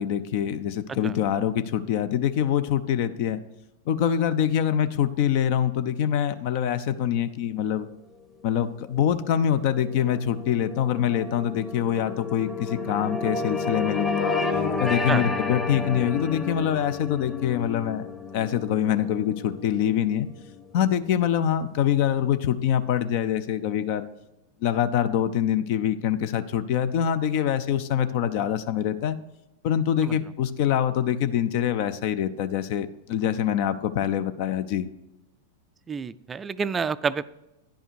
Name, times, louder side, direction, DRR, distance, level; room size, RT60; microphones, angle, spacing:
voice 1, 0.0-3.4 3.9-7.9 8.4-14.4 14.8-18.1 18.3-20.3 20.7-24.1 24.6-29.2 29.6-34.9, left 9 dB, 55° left, 12 dB, 0.5 m, -25 dB
sound 1, 8.7-21.3, left 3 dB, 15° left, 0.9 m, -32 dB
voice 2, 35.9-37.2, right 5 dB, 20° right, 17 dB, 0.3 m, -28 dB
10.0 x 5.5 x 4.6 m, 0.92 s
figure-of-eight pair, 95°, 0 cm